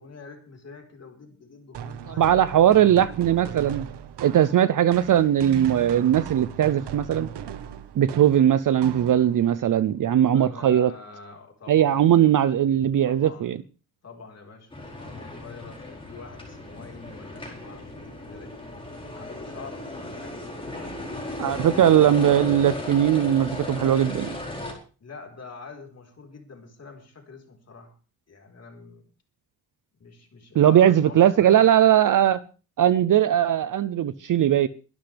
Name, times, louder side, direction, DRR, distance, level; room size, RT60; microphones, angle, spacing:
voice 1, 0.0-2.4 10.3-12.1 13.1-13.5 14.0-14.7 15.0-18.7 19.1-21.9 25.0-27.9 28.3-29.0 30.0-31.7, left 4 dB, 40° left, 4.3 m, -45 dB
sound 1, 1.7-9.6, right 9 dB, 90° right, 1.3 m, -38 dB
voice 2, 2.1-3.8 4.2-7.3 7.9-10.9 11.7-13.6 21.4-24.4 30.5-32.4 32.8-34.7, right 10 dB, 50° right, 0.6 m, -19 dB
sound 2, 14.7-24.7, left 1 dB, 15° left, 4.5 m, -36 dB
23.5 x 11.5 x 3.4 m
wide cardioid pair, 150°, 40 cm